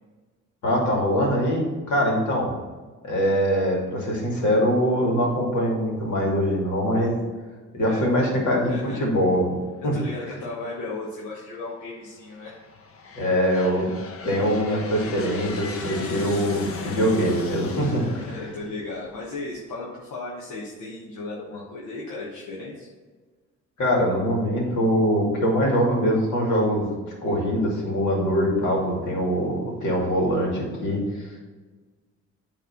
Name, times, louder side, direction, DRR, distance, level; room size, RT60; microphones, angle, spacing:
voice 1, 0.6-2.5 3.0-7.2 7.7-9.5 9.8-9.9 13.1-13.9 14.2-18.2 23.8-26.9 27.2-31.3, equal, 70° left, -1 dB, 2.5 m, -23 dB
voice 2, 8.3-9.1 9.9-12.6 15.8-16.4 17.8-22.9, left 2 dB, 85° left, -6 dB, 1.4 m, -36 dB
Aircraft, 10.7-11.3 12.0-19.5, left 4 dB, 50° left, 1.0 m, -38 dB
9.3 x 3.6 x 5.9 m, 1.4 s
cardioid pair, 90°, 30 cm